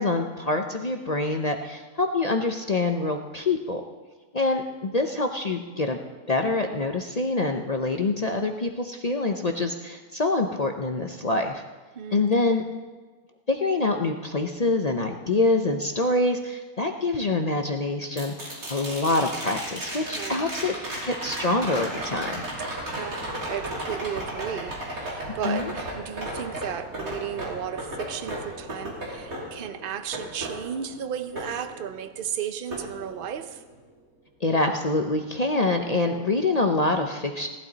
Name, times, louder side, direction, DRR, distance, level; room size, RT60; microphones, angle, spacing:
voice 1, 0.0-3.8 4.3-6.0 6.3-11.6 12.1-12.6 13.5-20.7 21.0-22.4 25.4-25.7 34.4-37.5, left 2 dB, 45° left, 4 dB, 0.5 m, -25 dB
sound 1, 18.2-32.3 32.7-33.7 36.0-36.1, right 1 dB, 65° right, 3.3 m, -35 dB
voice 2, 20.1-20.4 22.9-33.6, right 9 dB, 50° right, 10 dB, 0.7 m, -34 dB
18.0 x 12.0 x 4.0 m, 1.3 s
omnidirectional pair, 1.6 m